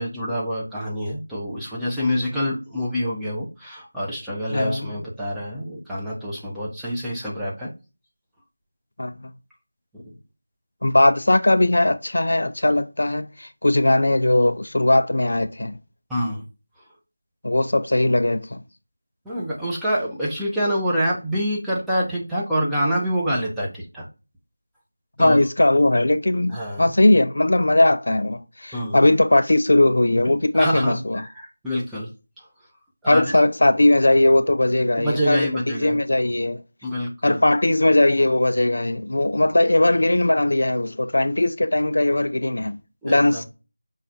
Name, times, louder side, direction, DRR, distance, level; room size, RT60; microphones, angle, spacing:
voice 1, 0.0-7.7 16.1-16.4 19.2-24.1 25.2-25.4 26.5-26.9 28.7-29.0 30.5-32.1 33.0-33.2 35.0-36.0 36.8-37.4 43.0-43.4, equal, ahead, 0.5 m, -26 dB
voice 2, 4.5-4.9 9.0-9.1 10.8-15.8 17.4-18.6 25.2-31.2 33.1-36.6 37.2-42.8 43.0-43.4, left 1 dB, 65° left, 0.4 m, -19 dB
5.5 x 2.3 x 2.5 m
figure-of-eight pair, 175°, 0 cm